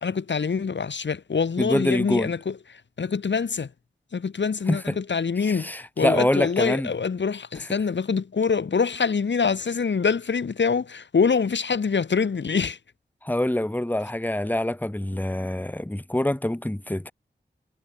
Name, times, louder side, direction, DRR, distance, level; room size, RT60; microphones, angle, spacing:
voice 1, 0.0-3.7 4.1-12.8, left 5 dB, 85° left, 1.8 m, -25 dB
voice 2, 1.6-2.3 4.7-5.0 5.4-6.9 13.2-17.1, left 1 dB, 10° left, 1.6 m, -25 dB
wide cardioid pair, 70°, 18 cm